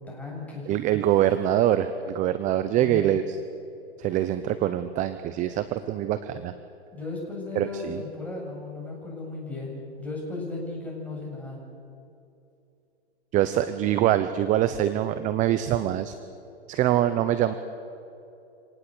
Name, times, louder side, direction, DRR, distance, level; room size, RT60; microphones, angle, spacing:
voice 1, 0.0-0.7 2.7-3.0 6.9-11.6, left 3 dB, 5° left, -3 dB, 7.8 m, -36 dB
voice 2, 0.7-3.4 4.0-6.5 7.5-8.0 13.3-16.1 16.7-17.5, right 12 dB, 25° right, 12 dB, 0.9 m, -24 dB
26.5 x 19.0 x 8.1 m, 2.7 s
hypercardioid pair, 135°, 33 cm